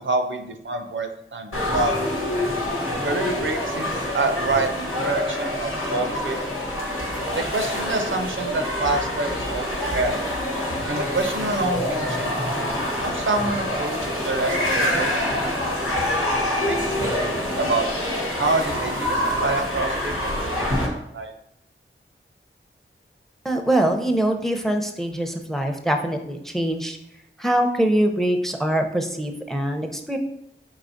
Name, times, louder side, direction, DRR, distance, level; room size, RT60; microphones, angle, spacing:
voice 1, 0.0-2.1 3.0-3.9 4.1-6.4 7.4-10.2 10.9-12.4 13.0-15.5 16.6-17.9 18.4-20.8 21.1-21.3, right 2 dB, 65° right, 6 dB, 0.5 m, -27 dB
sound 1, 1.5-20.9, left 1 dB, 90° left, 1.1 m, -26 dB
voice 2, 23.4-27.0 27.4-30.2, right 1 dB, ahead, 4 dB, 0.6 m, -23 dB
4.7 x 3.8 x 2.6 m, 0.78 s
wide cardioid pair, 45°, 21 cm